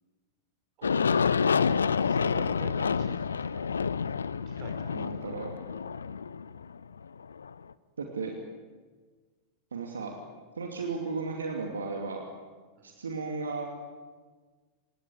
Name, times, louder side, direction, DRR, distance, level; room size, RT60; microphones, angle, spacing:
Aircraft, 0.8-7.5, left 6 dB, 70° left, 0.7 m, -28 dB
voice 1, 0.8-3.9 4.4-5.5 10.8-10.9 12.8-12.9, right 5 dB, 40° right, 6 dB, 5.0 m, -47 dB
voice 2, 4.9-5.5 8.0-8.3 9.7-10.2 10.6-12.2 12.8-13.7, right 4 dB, 70° right, 2 dB, 2.6 m, -34 dB
26.0 x 20.0 x 9.3 m, 1.4 s
figure-of-eight pair, 90°, 0 cm